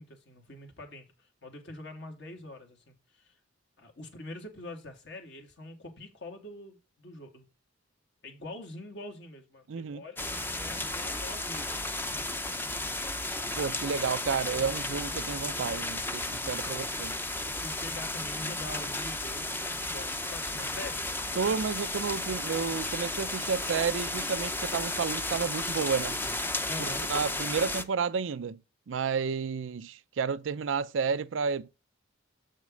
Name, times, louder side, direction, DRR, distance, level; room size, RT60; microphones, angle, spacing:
voice 1, 0.0-3.4 3.8-7.5 8.2-12.1 16.6-16.8 17.4-21.0 26.7-27.0, left 2 dB, 65° left, 2.3 m, -44 dB
voice 2, 9.7-10.0 13.6-17.2 21.4-26.2 27.1-28.6 28.9-31.7, right 6 dB, 70° right, 0.4 m, -31 dB
sound 1, 10.2-27.8, left 2 dB, 10° left, 0.7 m, -33 dB
7.3 x 6.3 x 3.8 m
head